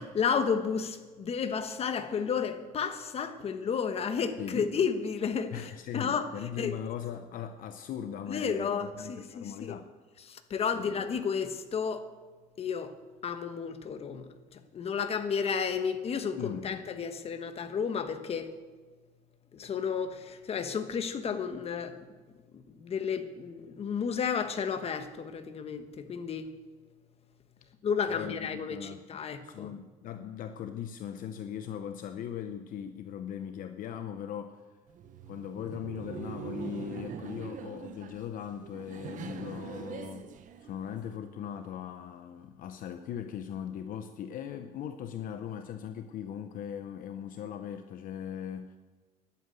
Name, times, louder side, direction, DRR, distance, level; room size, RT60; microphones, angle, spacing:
voice 1, 0.0-6.3 6.6-6.7 8.3-9.7 10.3-12.1 12.6-12.9 13.2-18.5 19.5-22.0 22.5-26.5 27.8-29.7, left 6 dB, 40° left, 1.2 m, -32 dB
voice 2, 5.5-9.9 10.7-11.0 16.4-16.8 28.1-29.1 29.4-34.6 35.3-40.3 40.6-48.8, left 9 dB, 60° left, 0.8 m, -39 dB
Laughter, 34.9-41.2, right 7 dB, 55° right, 1.1 m, -43 dB
11.5 x 8.5 x 9.2 m
cardioid pair, 125°, 16 cm